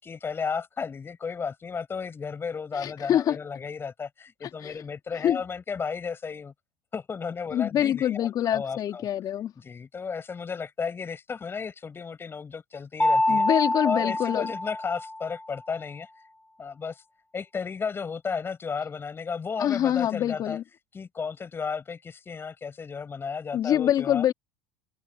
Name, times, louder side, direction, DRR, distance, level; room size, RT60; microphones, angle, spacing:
voice 1, 0.0-6.5 6.9-9.1 9.6-13.4 13.8-16.1 16.6-17.0 17.3-20.6 20.9-24.3, left 5 dB, 25° left, 6.9 m, -34 dB
voice 2, 2.7-3.4 4.6-4.8 5.2-5.4 7.5-9.5 13.3-14.6 19.6-20.6 23.5-24.3, left 11 dB, 45° left, 4.2 m, -25 dB
Mallet percussion, 13.0-15.5, left 1 dB, 10° left, 2.3 m, -26 dB
supercardioid pair, 100°, 9 cm